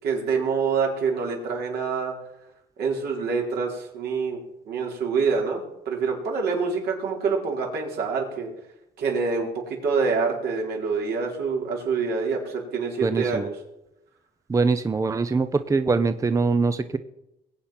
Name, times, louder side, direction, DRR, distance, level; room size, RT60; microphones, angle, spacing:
voice 1, 0.0-2.1 2.8-4.4 4.7-8.5 9.0-13.5, right 5 dB, 70° right, 0 dB, 4.6 m, -26 dB
voice 2, 13.0-13.5 14.5-17.0, right 4 dB, 20° right, 11 dB, 0.7 m, -23 dB
21.0 x 8.5 x 5.9 m, 0.88 s
cardioid pair, 110°, 17 cm